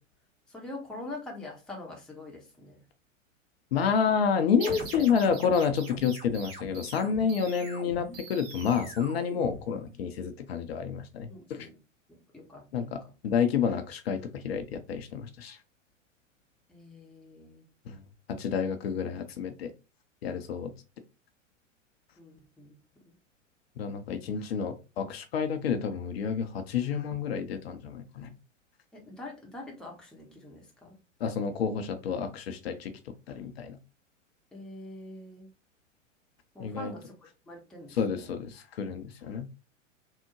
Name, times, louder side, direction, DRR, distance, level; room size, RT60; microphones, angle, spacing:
voice 1, 0.5-2.8 11.3-11.8 12.1-13.1 16.7-17.7 22.2-23.1 28.9-31.0 34.5-35.5 36.5-38.4, left 2 dB, ahead, 0.6 m, -45 dB
voice 2, 3.7-11.7 12.7-13.0 13.2-15.6 17.9-18.0 18.3-19.7 20.2-20.7 23.8-28.3 31.2-32.9 33.3-33.8 36.6-36.9 38.0-39.5, left 6 dB, 55° left, 0.5 m, -29 dB
sound 1, 4.6-10.0, right 3 dB, 45° right, 1.4 m, -43 dB
3.5 x 2.0 x 3.0 m
figure-of-eight pair, 100°, 38 cm